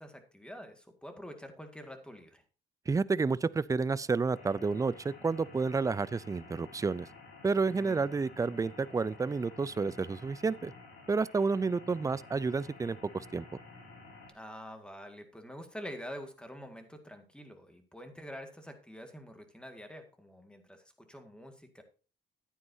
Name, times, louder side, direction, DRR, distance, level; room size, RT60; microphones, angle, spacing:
voice 1, 0.0-2.4 7.7-8.1 14.3-21.8, equal, 5° left, 1.9 m, -46 dB
voice 2, 2.9-7.1 7.4-10.7 11.1-13.5, right 4 dB, 15° right, 0.4 m, -30 dB
sound 1, 4.3-14.3, left 3 dB, 75° left, 4.3 m, -52 dB
11.0 x 9.3 x 2.7 m
cardioid pair, 90°, 20 cm